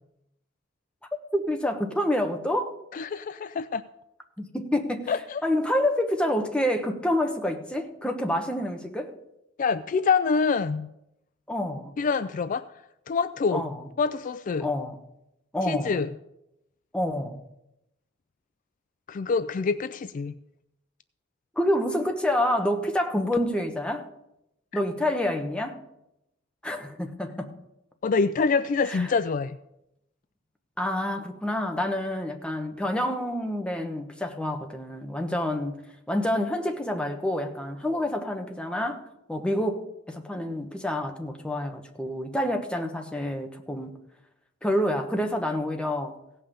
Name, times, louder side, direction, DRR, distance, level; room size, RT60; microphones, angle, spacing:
voice 1, 1.3-2.7 4.4-5.1 5.4-9.1 11.5-11.9 13.5-13.8 14.6-15.0 15.5-16.0 16.9-17.4 21.6-24.1 24.7-25.8 26.6-27.5 28.8-29.1 30.8-35.8 36.1-39.0 39.3-44.0 44.6-46.2, left 1 dB, 5° left, 1.1 m, -28 dB
voice 2, 2.9-3.8 5.1-5.4 9.6-10.9 12.0-12.6 13.1-13.7 14.0-14.7 15.6-16.1 19.1-20.4 28.0-29.6, left 5 dB, 45° left, 0.3 m, -26 dB
16.5 x 5.6 x 6.9 m
head